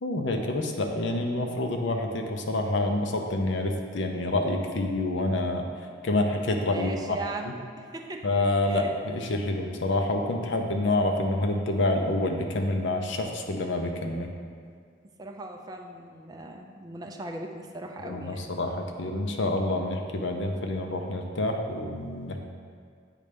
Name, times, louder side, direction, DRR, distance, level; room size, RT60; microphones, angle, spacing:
voice 1, 0.0-5.7 6.0-6.9 8.2-14.3 18.0-22.4, left 2 dB, 65° left, 3 dB, 0.7 m, -27 dB
voice 2, 6.6-8.3 8.6-8.9 15.2-18.5, right 2 dB, 20° right, 2 dB, 0.4 m, -39 dB
8.2 x 3.2 x 5.1 m, 2.1 s
head